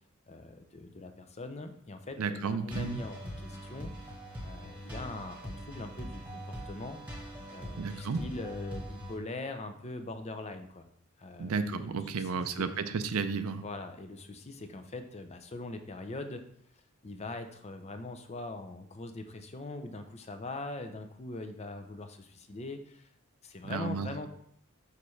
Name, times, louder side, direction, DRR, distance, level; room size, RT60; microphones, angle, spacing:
voice 1, 0.3-4.1 4.4-7.0 7.5-10.9 11.2-12.7 13.6-16.4 17.0-23.1 23.4-24.3, left 2 dB, 30° left, 7 dB, 0.6 m, -42 dB
voice 2, 2.2-3.0 7.8-8.3 11.4-13.6 23.6-24.1, right 5 dB, 80° right, 10 dB, 0.5 m, -32 dB
sound 1, 2.7-9.2, equal, 5° right, 1.5 m, -42 dB
6.6 x 5.5 x 3.2 m, 0.68 s
head